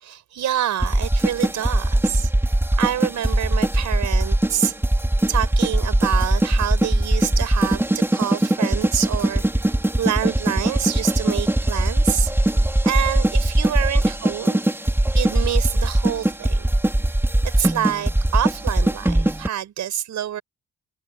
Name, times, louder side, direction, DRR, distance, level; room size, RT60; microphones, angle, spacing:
voice 1, 0.0-2.3 2.8-4.7 5.3-9.7 10.0-12.3 12.8-14.6 15.1-16.6 17.6-20.4, right 10 dB, 70° right, 5.0 m, -27 dB
sound 1, 0.8-19.5, right 1 dB, 10° right, 3.7 m, -20 dB
cardioid pair, 90°, 30 cm